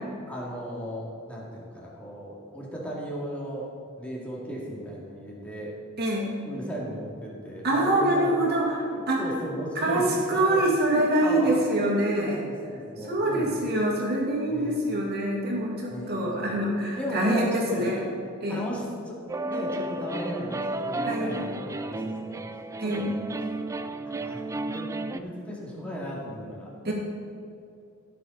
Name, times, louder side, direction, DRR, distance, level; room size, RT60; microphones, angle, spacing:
voice 1, 0.3-3.7 4.0-5.7 6.4-8.4 8.9-10.1 10.5-10.6 10.9-13.6 14.5-14.8 15.9-16.1 16.4-16.6 16.9-18.1 18.5-22.4 22.8-23.2 23.8-26.9, equal, 5° left, -5 dB, 2.3 m, -36 dB
voice 2, 6.0-6.3 7.6-9.2 9.8-12.5 13.1-18.0 18.4-18.6 21.1-21.5 22.8-23.1 26.8-26.9, right 1 dB, 45° right, -2 dB, 2.3 m, -25 dB
sound 1, 19.3-25.2, right 2 dB, 15° right, 0.3 m, -33 dB
16.0 x 6.8 x 4.1 m, 2.5 s
head